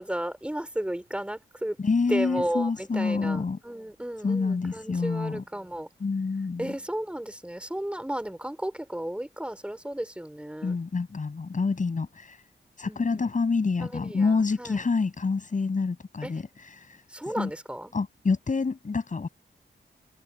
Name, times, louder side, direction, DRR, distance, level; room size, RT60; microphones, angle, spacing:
voice 1, 0.0-1.8 2.1-5.9 6.6-10.8 12.8-13.3 13.8-14.8 16.2-16.3 17.1-17.9, right 1 dB, 5° right, 3.8 m, -34 dB
voice 2, 1.8-3.6 4.2-5.4 6.0-6.7 10.6-12.4 12.8-16.4 17.4-17.5 17.9-19.3, left 4 dB, 40° left, 7.6 m, -27 dB
wide cardioid pair, 120°, 20 cm